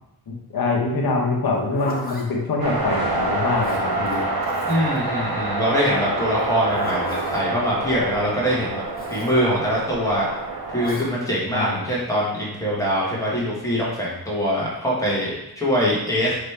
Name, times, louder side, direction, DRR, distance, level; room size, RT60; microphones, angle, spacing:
voice 1, 0.3-4.2 11.5-11.9, left 3 dB, 65° left, -1 dB, 1.0 m, -24 dB
Zipper (clothing), 1.5-2.3 3.6-5.0 6.4-7.5 8.9-9.3 10.8-11.1, left 2 dB, 25° left, 0.7 m, -36 dB
sound 1, 2.6-10.9, right 2 dB, 65° right, 0.8 m, -27 dB
voice 2, 4.7-8.8 9.1-10.3 10.7-16.3, equal, 10° left, -6 dB, 1.2 m, -23 dB
4.9 x 3.1 x 3.3 m, 0.89 s
wide cardioid pair, 125°, 39 cm